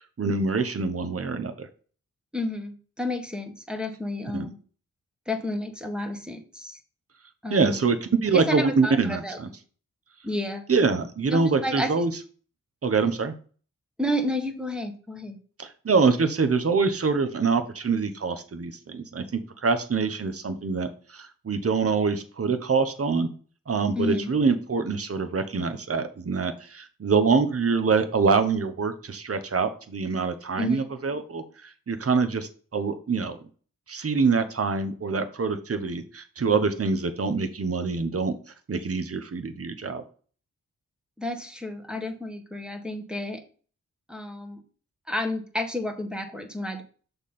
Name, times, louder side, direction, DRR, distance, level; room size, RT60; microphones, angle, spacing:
voice 1, 0.2-1.7 4.3-4.5 7.5-9.5 10.7-12.1 12.8-13.3 15.6-19.2 19.6-23.3 23.7-33.4 33.9-38.3 38.7-40.0, right 4 dB, 45° right, 9 dB, 1.0 m, -25 dB
voice 2, 2.3-4.6 5.3-6.8 7.4-7.9 8.3-9.4 10.2-10.6 11.3-11.9 14.0-15.4 23.9-24.3 30.6-30.9 41.2-43.4 44.1-44.6 45.1-46.8, left 1 dB, 5° right, 5 dB, 1.4 m, -31 dB
6.5 x 3.5 x 5.7 m, 0.40 s
cardioid pair, 65°, 33 cm